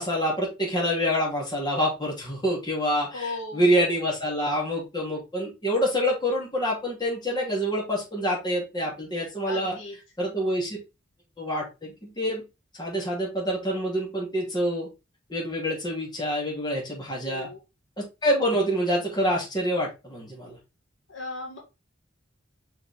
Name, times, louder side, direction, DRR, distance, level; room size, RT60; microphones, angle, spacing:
voice 1, 0.0-9.8 10.2-10.8 11.4-12.4 12.8-14.9 15.3-17.5 18.2-20.6, equal, 20° left, -3 dB, 2.8 m, -26 dB
voice 2, 3.1-3.9 9.5-9.9 17.1-17.6 21.1-21.6, left 3 dB, 65° left, 0 dB, 1.9 m, -36 dB
5.6 x 4.7 x 3.6 m, 0.27 s
head